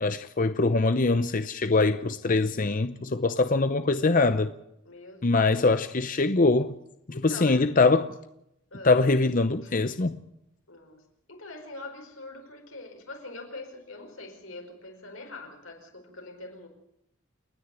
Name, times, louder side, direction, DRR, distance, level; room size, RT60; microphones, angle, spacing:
voice 1, 0.0-4.5 5.2-6.7 7.2-8.1 8.8-10.2, left 3 dB, 40° left, 0.7 m, -23 dB
voice 2, 4.8-5.5 7.1-7.6 8.7-9.0 9.6-9.8 10.7-16.7, left 2 dB, 90° left, 5.0 m, -43 dB
29.5 x 10.0 x 9.0 m
head